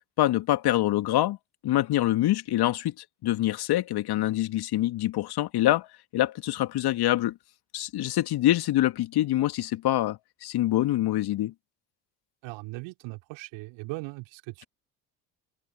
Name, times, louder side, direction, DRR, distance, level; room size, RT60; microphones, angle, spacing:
voice 1, 0.2-1.4 1.6-2.9 3.2-5.9 6.1-7.3 7.7-11.5, left 14 dB, 50° left, 2.5 m, -25 dB
voice 2, 12.4-14.7, right 24 dB, 60° right, 4.1 m, -39 dB
figure-of-eight pair, 60°, 49 cm